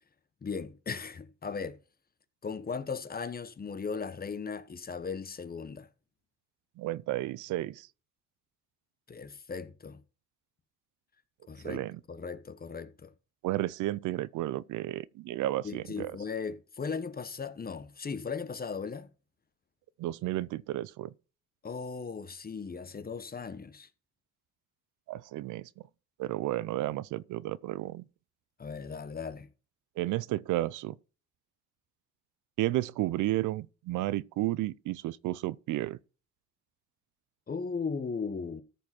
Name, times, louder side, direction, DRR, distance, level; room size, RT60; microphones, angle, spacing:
voice 1, 0.4-1.8 2.4-5.9 9.1-10.0 11.5-11.8 12.1-13.1 15.6-19.1 21.6-23.9 28.6-29.5 37.5-38.6, left 5 dB, 30° left, 1.0 m, -37 dB
voice 2, 6.8-7.9 11.6-12.0 13.4-16.2 20.0-21.1 25.1-25.7 26.2-28.0 30.0-31.0 32.6-36.0, right 16 dB, 80° right, 0.5 m, -32 dB
13.5 x 4.9 x 4.3 m
cardioid pair, 90°, 30 cm